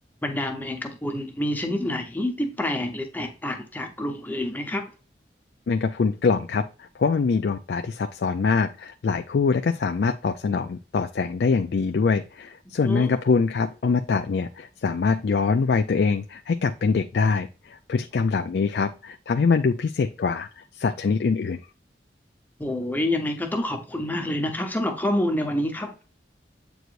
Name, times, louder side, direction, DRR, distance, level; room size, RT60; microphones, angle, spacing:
voice 1, 0.2-4.9 12.8-13.1 22.6-25.9, left 1 dB, 10° left, 0.8 m, -27 dB
voice 2, 5.7-21.6, left 4 dB, 65° left, 0.4 m, -24 dB
7.9 x 4.6 x 2.5 m
head